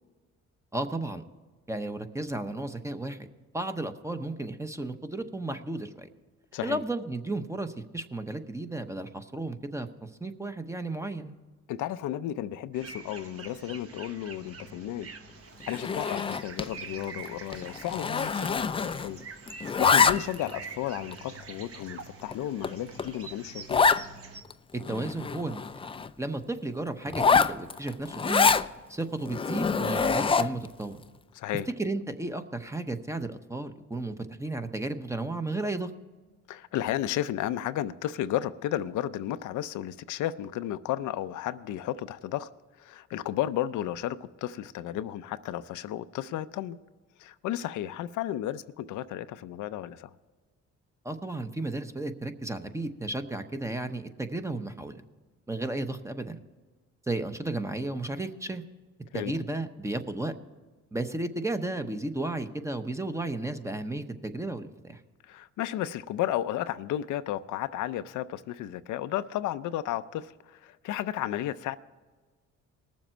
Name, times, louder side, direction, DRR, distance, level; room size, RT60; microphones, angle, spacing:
voice 1, 0.7-1.2 1.7-3.2 3.5-6.1 6.6-11.3 24.9-25.6 26.2-28.5 28.9-31.0 31.8-35.9 51.0-55.0 55.5-56.4 57.1-58.6 59.1-60.3 60.9-65.0, right 2 dB, 10° right, 0.8 m, -33 dB
voice 2, 11.7-15.1 15.7-19.2 19.8-23.9 31.3-31.7 36.5-42.5 42.8-46.8 47.2-50.1 59.1-59.4 65.2-71.8, left 12 dB, 80° left, 0.5 m, -33 dB
sound 1, 12.7-24.4, right 5 dB, 50° right, 1.2 m, -45 dB
Zipper (clothing), 15.7-16.7 17.0-17.3 17.5-19.2 19.5-20.5 21.1-21.2 21.8-21.9 22.3-22.4 22.6-22.7 23.0-23.1 23.7-24.0 24.5-24.6 24.8-26.1 27.1-28.7 29.3-30.7, left 5 dB, 20° left, 0.3 m, -25 dB
19.5 x 7.3 x 4.4 m
cardioid pair, 90°, 30 cm